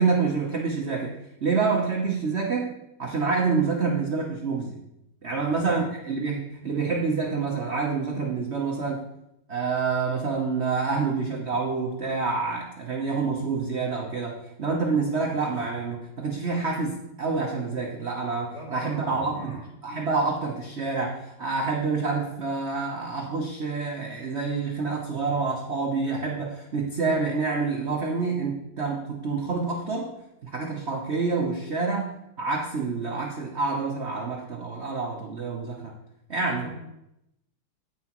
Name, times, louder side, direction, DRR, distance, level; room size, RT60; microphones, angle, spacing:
voice 1, 0.0-2.7 3.0-4.8 5.2-9.0 9.5-30.1 30.4-35.9 36.3-36.7, right 4 dB, 55° right, 0 dB, 0.7 m, -27 dB
voice 2, 5.2-5.8 18.4-19.7 36.3-36.8, equal, 40° left, -5 dB, 4.1 m, -43 dB
9.6 x 9.3 x 3.0 m, 0.83 s
omnidirectional pair, 2.4 m